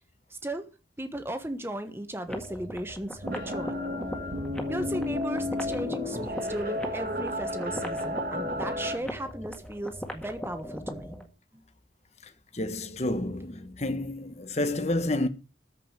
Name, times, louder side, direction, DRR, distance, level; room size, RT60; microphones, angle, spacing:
voice 1, 0.3-0.7 1.0-3.8 4.7-11.2 11.5-11.6, right 1 dB, 15° right, 1.3 m, -36 dB
sound 1, 2.2-11.3, equal, 5° left, 1.8 m, -40 dB
sound 2, 3.2-9.0, left 1 dB, 55° right, 1.9 m, -32 dB
voice 2, 12.5-15.3, left 1 dB, 40° left, 1.2 m, -29 dB
14.0 x 5.5 x 8.7 m
head